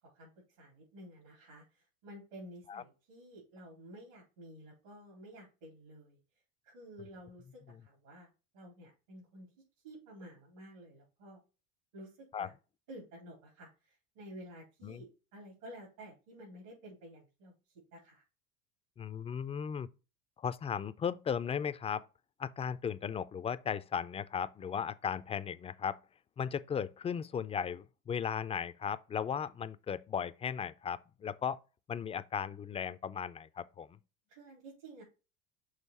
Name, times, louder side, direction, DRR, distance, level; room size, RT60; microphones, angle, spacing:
voice 1, 0.6-6.2 6.6-9.5 9.8-11.4 11.9-12.5 12.9-17.5 17.9-18.2 34.3-35.0, right 1 dB, 80° right, 3.7 m, -52 dB
voice 2, 19.0-19.9 20.4-22.0 22.4-26.0 26.4-31.6 31.9-33.9, left 7 dB, 15° left, 0.3 m, -36 dB
6.5 x 3.2 x 5.4 m
supercardioid pair, 90°, 39 cm